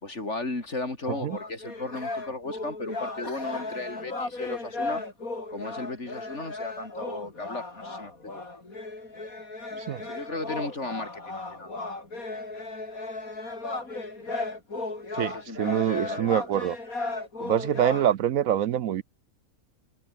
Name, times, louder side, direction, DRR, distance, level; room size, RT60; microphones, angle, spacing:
voice 1, 0.0-5.0 5.5-8.4 10.0-11.7 15.2-16.5, left 2 dB, 50° left, 4.4 m, -36 dB
sound 1, 1.0-18.1, left 2 dB, 75° left, 5.1 m, -35 dB
voice 2, 15.6-16.8 17.4-19.0, right 10 dB, 70° right, 1.1 m, -25 dB
omnidirectional pair, 1.5 m